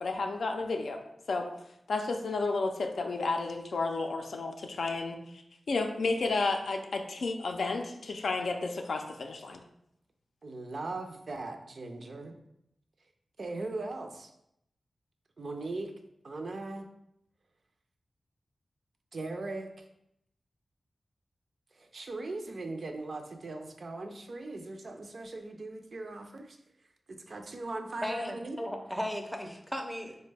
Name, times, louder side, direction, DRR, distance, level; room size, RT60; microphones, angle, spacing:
voice 1, 0.0-1.0 1.3-1.5 1.9-5.2 5.7-9.6, left 3 dB, 80° left, 4 dB, 0.4 m, -32 dB
voice 2, 10.4-12.4 13.4-14.3 15.4-15.9 16.2-16.9 19.1-19.8 21.8-26.6 27.1-28.6, right 2 dB, 60° right, 4 dB, 0.4 m, -39 dB
voice 3, 28.0-30.2, equal, 5° left, 4 dB, 0.4 m, -36 dB
3.9 x 2.1 x 3.3 m, 0.78 s
wide cardioid pair, 90°, 0 cm